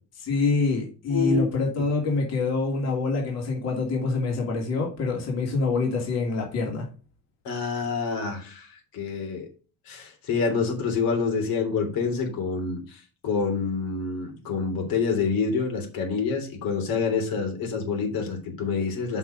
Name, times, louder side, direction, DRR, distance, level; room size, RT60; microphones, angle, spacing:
voice 1, 0.2-6.9, left 4 dB, 45° left, -1 dB, 2.7 m, -26 dB
voice 2, 1.1-1.4 7.4-8.7 8.9-9.5 9.9-19.2, left 5 dB, 75° left, 2 dB, 3.2 m, -27 dB
6.9 x 6.0 x 5.1 m, 0.35 s
cardioid pair, 170°, 36 cm